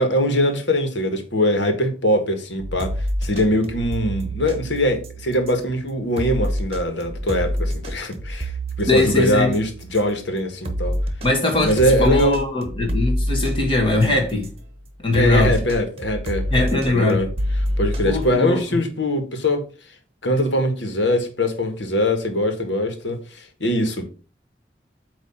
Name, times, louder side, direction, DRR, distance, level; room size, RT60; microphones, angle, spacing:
voice 1, 0.0-2.9 3.2-8.5 8.8-11.0 11.6-12.4 15.1-17.3 17.8-19.7 20.2-24.1, left 1 dB, 85° left, 1.6 m, -22 dB
sound 1, 2.6-14.6 15.1-18.3, equal, 35° right, 1.1 m, -27 dB
voice 2, 8.9-9.5 11.2-14.5 15.0-15.6 16.5-17.2 18.0-18.6, left 2 dB, 30° left, 1.4 m, -20 dB
8.7 x 3.0 x 5.6 m
head